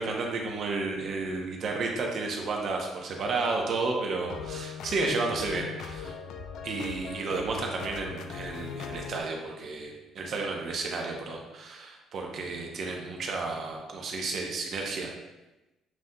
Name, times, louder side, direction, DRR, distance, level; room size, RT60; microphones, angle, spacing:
voice 1, 0.0-6.1 6.6-15.1, right 3 dB, 40° right, 0 dB, 0.7 m, -32 dB
sound 1, 4.1-9.2, left 6 dB, 60° left, 0.3 m, -39 dB
7.1 x 2.5 x 2.2 m, 1.0 s
cardioid pair, 165°, 0 cm